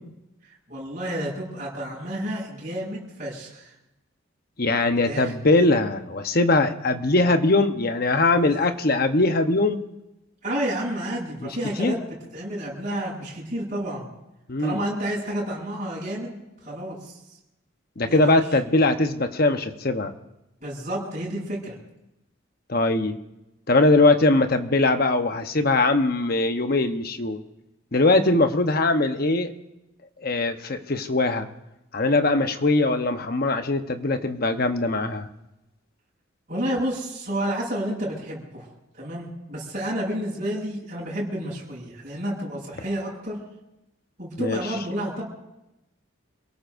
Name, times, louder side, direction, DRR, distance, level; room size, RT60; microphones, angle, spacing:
voice 1, 0.7-3.7 4.9-5.3 8.4-8.6 10.4-12.0 12.3-14.1 14.6-17.2 18.1-18.4 20.6-21.8 36.5-43.4 44.2-45.2, right 1 dB, 40° right, -5 dB, 7.3 m, -30 dB
voice 2, 4.6-9.8 11.8-11.9 14.5-14.8 18.0-20.1 22.7-23.2 23.7-27.4 27.9-29.5 30.2-31.5 31.9-35.3 44.4-44.6, left 2 dB, 45° left, 7 dB, 1.0 m, -21 dB
28.0 x 18.0 x 2.7 m, 0.92 s
head